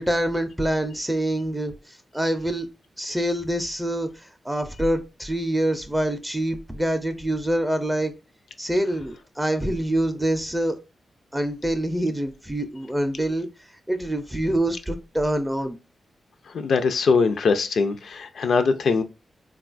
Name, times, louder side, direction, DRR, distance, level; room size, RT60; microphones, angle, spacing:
voice 1, 0.0-1.7 2.1-2.7 3.0-8.1 8.6-10.8 11.3-13.5 13.9-15.8, right 1 dB, 10° right, 0.4 m, -25 dB
voice 2, 16.5-19.0, left 4 dB, 80° left, 0.4 m, -22 dB
3.6 x 2.3 x 2.4 m
cardioid pair, 90°, 0 cm